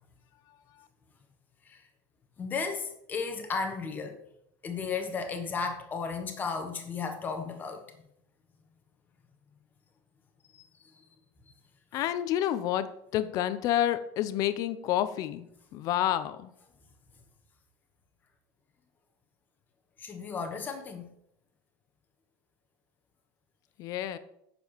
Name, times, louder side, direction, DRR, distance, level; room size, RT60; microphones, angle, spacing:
voice 1, 2.4-4.2 4.6-8.1 10.5-10.6 20.0-21.1, left 5 dB, 20° left, 1.4 m, -34 dB
voice 2, 11.9-12.9 13.1-16.5 23.8-24.2, left 12 dB, 35° left, 0.7 m, -29 dB
9.2 x 7.1 x 5.7 m
cardioid pair, 175°, 10 cm